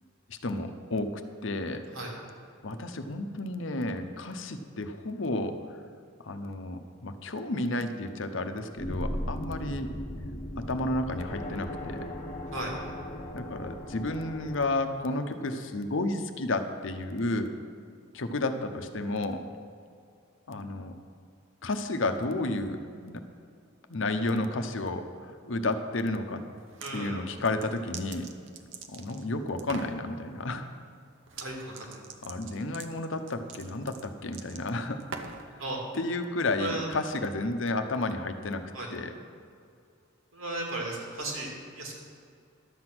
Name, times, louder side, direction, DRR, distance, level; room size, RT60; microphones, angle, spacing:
voice 1, 0.3-1.8 2.6-5.6 6.2-9.9 10.6-12.1 13.3-17.5 18.1-19.4 20.5-20.9 21.6-23.2 23.9-26.4 26.9-28.3 28.9-30.7 32.2-35.0 35.9-38.6 38.9-39.1, left 2 dB, 65° left, 8 dB, 0.8 m, -32 dB
sound 1, 8.7-14.7, left 1 dB, 35° left, 1.0 m, -37 dB
sound 2, 26.6-27.0 27.4-29.3 29.6-30.0 31.3-31.5 31.7-35.5, right 5 dB, 65° right, 0.8 m, -43 dB
voice 2, 26.8-27.2 31.4-32.0 35.6-35.8 36.5-36.9 38.7-38.9 40.3-41.9, right 2 dB, 85° right, -1 dB, 2.5 m, -35 dB
12.0 x 7.7 x 6.1 m, 2.4 s
head